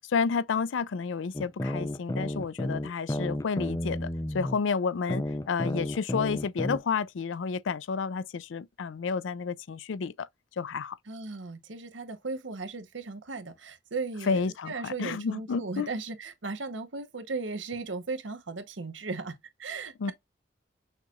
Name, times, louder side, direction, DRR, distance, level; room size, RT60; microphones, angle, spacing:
voice 1, 0.1-10.3 10.6-11.0 14.2-15.9 20.0-20.1, left 5 dB, 90° left, 0.4 m, -30 dB
sound 1, 1.3-4.6 5.1-6.8, left 1 dB, 20° left, 0.5 m, -32 dB
voice 2, 11.1-19.3 19.6-20.1, right 3 dB, 85° right, 1.0 m, -36 dB
6.4 x 2.9 x 2.4 m
head